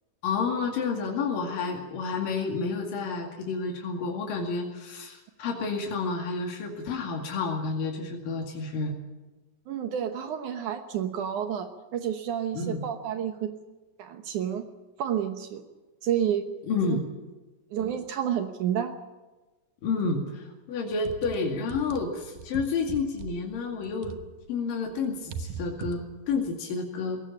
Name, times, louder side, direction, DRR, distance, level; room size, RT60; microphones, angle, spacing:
voice 1, 0.2-9.0 12.5-12.9 16.7-17.0 19.8-24.2 24.5-27.2, left 4 dB, 85° left, 2 dB, 3.9 m, -30 dB
voice 2, 9.7-13.5 14.0-14.6 15.0-15.6 16.0-16.5 16.9-17.0 17.7-18.9, right 9 dB, 70° right, 7 dB, 2.5 m, -30 dB
sound 1, 20.9-24.6 24.8-26.5, right 6 dB, 85° right, 2.7 m, -40 dB
21.0 x 17.0 x 8.7 m, 1.1 s
omnidirectional pair, 3.8 m